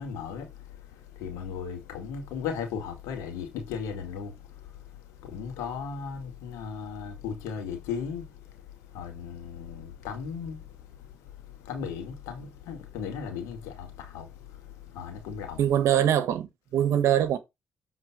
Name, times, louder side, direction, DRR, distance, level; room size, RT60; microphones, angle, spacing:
voice 1, 0.0-15.6, left 6 dB, 80° left, 2.2 m, -37 dB
voice 2, 15.6-17.4, right 10 dB, 70° right, 1.2 m, -23 dB
7.3 x 3.8 x 6.0 m
hypercardioid pair, 50°, 5 cm